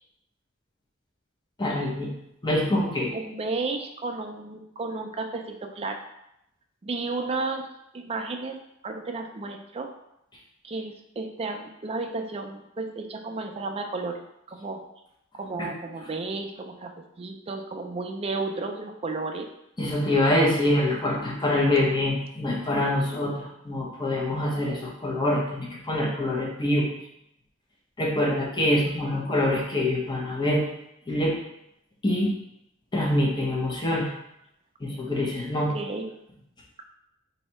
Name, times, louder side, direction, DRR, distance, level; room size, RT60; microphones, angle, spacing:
voice 1, 1.6-2.1 2.4-3.1 15.6-15.7 19.8-26.9 28.0-30.6 31.1-31.4 32.0-32.3 32.9-34.1 34.8-35.7, left 1 dB, 20° left, -3 dB, 0.7 m, -25 dB
voice 2, 3.1-6.0 6.8-7.7 7.9-8.6 8.8-9.9 10.6-14.2 14.5-14.8 15.3-16.9 17.2-19.5 28.6-29.2 35.7-36.1, right 3 dB, 30° right, 4 dB, 0.4 m, -33 dB
3.2 x 2.7 x 4.3 m, 0.82 s
head